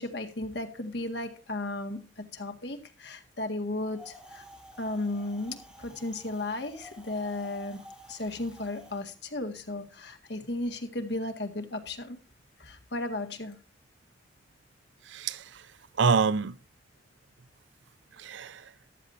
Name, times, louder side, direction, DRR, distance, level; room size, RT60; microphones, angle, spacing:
voice 1, 0.0-4.5 4.8-12.2 12.6-13.6, left 2 dB, 60° left, 1.9 m, -35 dB
Wind, 3.9-9.0, equal, 5° right, 2.8 m, -51 dB
voice 2, 15.0-16.6 18.1-18.7, right 5 dB, 80° right, 0.6 m, -28 dB
14.5 x 11.5 x 2.7 m
head